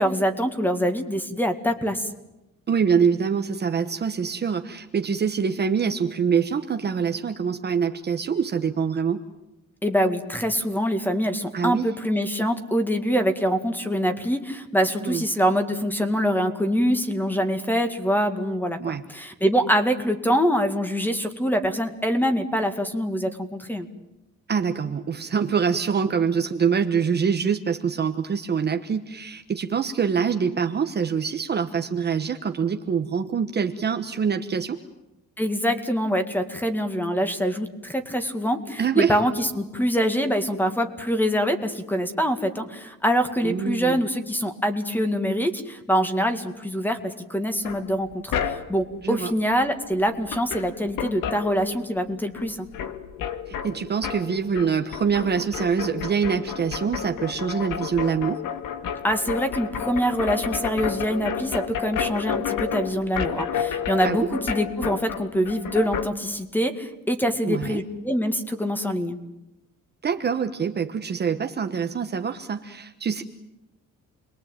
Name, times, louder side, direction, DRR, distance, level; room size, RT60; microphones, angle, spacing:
voice 1, 0.0-2.1 9.8-23.9 35.4-52.7 59.0-69.2, equal, 5° left, 8 dB, 2.1 m, -24 dB
voice 2, 2.7-9.2 11.5-11.9 15.0-15.2 18.8-19.0 24.5-34.8 38.8-39.2 43.4-44.0 49.0-49.3 53.5-58.4 64.0-64.3 67.4-67.8 70.0-73.2, right 6 dB, 30° right, 6 dB, 1.2 m, -25 dB
sound 1, 47.6-48.9 49.9-50.0 50.3-52.1 52.3-66.1, left 8 dB, 85° left, 2.1 m, -31 dB
29.0 x 22.0 x 9.1 m, 0.95 s
cardioid pair, 170°, 32 cm